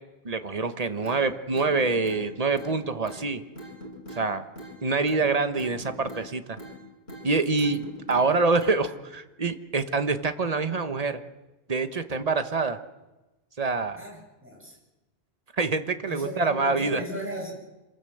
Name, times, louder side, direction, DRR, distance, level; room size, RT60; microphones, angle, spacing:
voice 1, 0.2-3.4 4.1-4.4 4.8-6.6 7.2-11.2 11.7-12.8 13.6-14.0 15.6-17.0, right 4 dB, 35° right, 9 dB, 1.3 m, -26 dB
sound 1, 1.0-1.2 1.5-2.2 2.5-2.7 3.1-3.2 3.6-4.2 4.6-4.8 5.1-5.2 5.6-6.3 6.6-6.8 7.1-7.3 7.6-8.3 8.6-8.8, right 1 dB, 80° left, 6.7 m, -41 dB
voice 2, 14.0-14.7 16.1-17.5, equal, 10° right, -1 dB, 6.5 m, -36 dB
26.5 x 19.5 x 7.9 m, 1.1 s
omnidirectional pair, 1.1 m